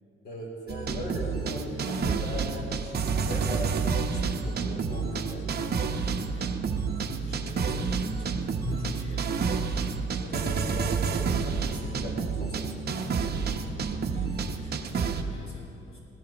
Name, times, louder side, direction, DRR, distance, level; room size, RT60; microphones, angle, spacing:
voice 1, 0.2-5.5 10.2-13.4, left 1 dB, 55° left, -3 dB, 3.7 m, -39 dB
sound 1, 0.7-15.2, right 5 dB, 55° right, 1.0 m, -29 dB
voice 2, 5.9-9.6 13.7-16.0, left 3 dB, 85° left, -5 dB, 3.6 m, -42 dB
18.5 x 16.0 x 3.0 m, 2.7 s
cardioid pair, 90°, 20 cm